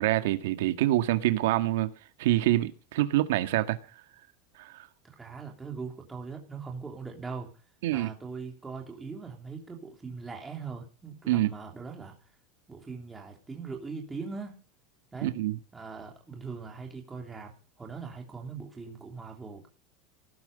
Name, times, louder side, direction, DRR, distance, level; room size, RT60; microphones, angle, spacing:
voice 1, 0.0-1.9 2.2-3.8 4.6-4.9 7.8-8.1 11.3-11.5 15.2-15.6, right 15 dB, 75° right, 1.8 m, -26 dB
voice 2, 5.0-7.6 7.9-12.1 12.7-14.6 15.1-15.4 15.7-19.7, right 4 dB, 10° right, 3.3 m, -41 dB
18.5 x 14.0 x 5.4 m
supercardioid pair, 180°, 0 cm